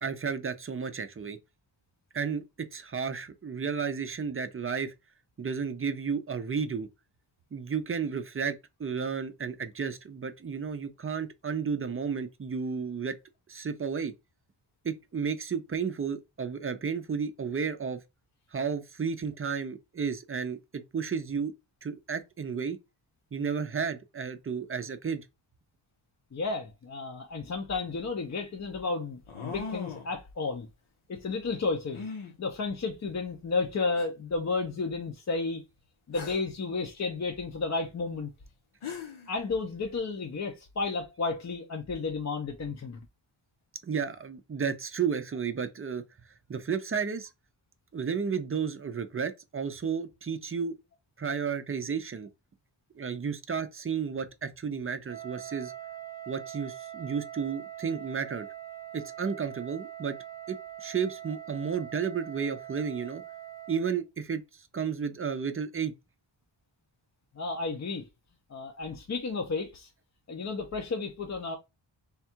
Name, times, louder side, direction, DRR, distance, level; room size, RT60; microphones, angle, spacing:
voice 1, 0.0-1.4 2.1-4.9 5.4-6.9 7.5-13.1 13.5-14.1 14.8-18.0 18.5-21.5 21.8-22.8 23.3-25.2 43.8-46.0 46.5-47.3 47.9-50.8 51.2-52.3 53.0-55.7 56.3-58.5 58.9-60.2 60.5-63.2 63.7-64.4 64.7-65.9, right 6 dB, 30° right, 0.4 m, -32 dB
voice 2, 26.3-30.7 31.1-32.0 32.4-35.6 36.1-38.3 39.3-43.0 67.4-68.1 68.5-69.9 70.3-71.6, left 4 dB, 35° left, 0.5 m, -32 dB
sound 1, 27.8-27.9 29.3-30.2 31.9-32.3 33.3-33.4 34.0-34.1 36.1-36.5 38.5-38.6 38.8-39.3, left 5 dB, 80° left, 1.1 m, -39 dB
Wind instrument woodwind instrument, 55.1-64.0, right 11 dB, 50° left, 1.0 m, -43 dB
3.5 x 2.3 x 4.3 m
wide cardioid pair, 155°, 48 cm